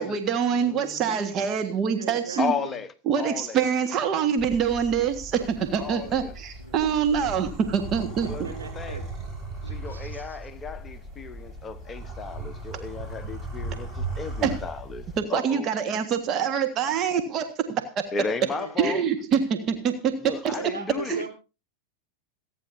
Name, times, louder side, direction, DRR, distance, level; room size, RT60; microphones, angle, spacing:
voice 1, 0.0-2.5 3.1-8.3 14.4-14.6 15.2-18.1 18.8-20.1 20.4-20.6 21.1-21.2, right 7 dB, 30° right, 1.6 m, -25 dB
voice 2, 0.5-1.3 2.4-3.6 5.8-6.3 8.2-9.0 9.6-15.7 18.1-19.0 20.2-21.3, left 4 dB, 20° left, 1.0 m, -34 dB
voice 3, 1.9-2.8 5.7-6.8 8.2-9.1 9.6-10.4 18.5-19.0 19.5-19.7 20.5-21.3, right 4 dB, 75° right, 3.9 m, -40 dB
sound 1, 4.4-15.2, right 2 dB, 15° right, 5.4 m, -37 dB
27.5 x 9.9 x 2.7 m
figure-of-eight pair, 90°, 0 cm